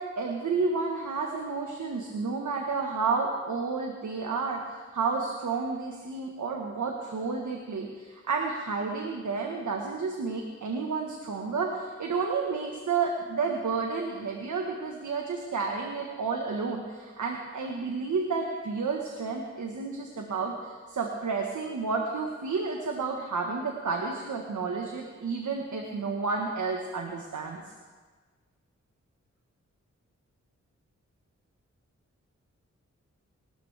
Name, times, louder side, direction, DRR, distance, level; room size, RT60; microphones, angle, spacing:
voice 1, 0.0-27.6, right 4 dB, 80° right, 1 dB, 1.4 m, -31 dB
21.5 x 13.0 x 3.5 m, 1.4 s
cardioid pair, 60°, 29 cm